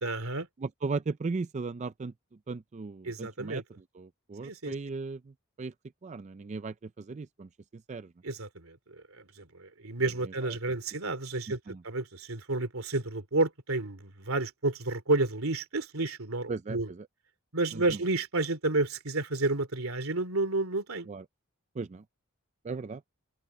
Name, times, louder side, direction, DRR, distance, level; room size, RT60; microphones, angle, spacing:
voice 1, 0.0-0.5 3.0-3.6 4.4-4.7 8.2-16.9 17.5-21.1, right 2 dB, 80° right, 2.8 m, -31 dB
voice 2, 0.6-2.1 2.5-3.6 4.0-5.2 5.6-5.7 6.0-7.5 7.9-8.1 11.7-11.8 16.5-16.8 17.7-17.8 21.1-21.2 21.8-22.0 22.6-23.0, right 4 dB, 35° right, 0.4 m, -36 dB
open air
head